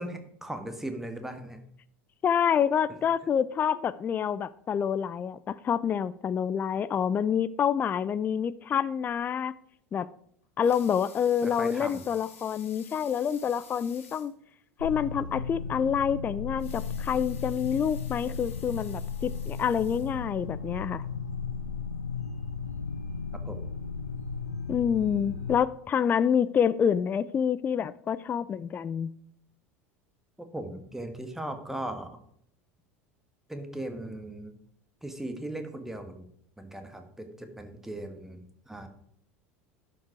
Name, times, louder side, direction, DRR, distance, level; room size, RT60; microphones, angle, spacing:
voice 1, 0.0-1.6 11.4-12.1 23.4-23.6 30.4-32.2 33.5-34.5 35.0-36.3 36.6-38.9, right 1 dB, 5° right, 7 dB, 1.4 m, -38 dB
voice 2, 2.2-9.5 9.9-10.1 10.6-14.3 14.8-21.0 24.7-29.1, left 8 dB, 25° left, 17 dB, 0.4 m, -27 dB
Water tap faucet / Sink (filling or washing) / Liquid, 10.4-14.4 14.8-14.9 15.3-15.4 16.4-20.6 21.2-21.3, left 6 dB, 70° left, 2.1 m, -52 dB
sound 1, 14.8-25.6, left 5 dB, 85° left, 0.6 m, -35 dB
11.0 x 5.3 x 4.9 m, 0.68 s
figure-of-eight pair, 75°, 8 cm